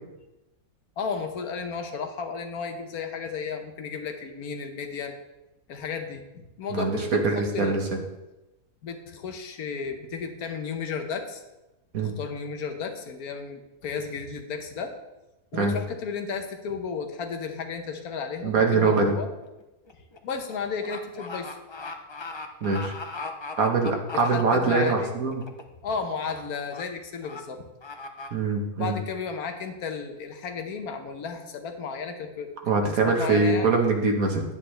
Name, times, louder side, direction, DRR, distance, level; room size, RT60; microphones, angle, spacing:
voice 1, 1.0-5.1 5.7-7.9 8.8-11.4 12.0-15.0 15.5-19.3 20.2-21.6 24.1-25.1 25.8-27.6 28.7-33.8, left 5 dB, 85° left, 5 dB, 1.4 m, -33 dB
voice 2, 6.7-8.0 11.9-12.1 15.5-15.7 18.4-19.2 22.6-22.9 23.6-25.4 28.3-29.0 32.7-34.4, right 4 dB, 70° right, 2 dB, 1.7 m, -23 dB
sound 1, 18.8-19.1 19.4-24.9 25.3-25.6 25.9-26.4 26.7-26.8 27.2-27.4 27.8-28.3, left 3 dB, 45° left, 0.3 m, -38 dB
10.0 x 9.2 x 3.2 m, 0.98 s
omnidirectional pair, 1.5 m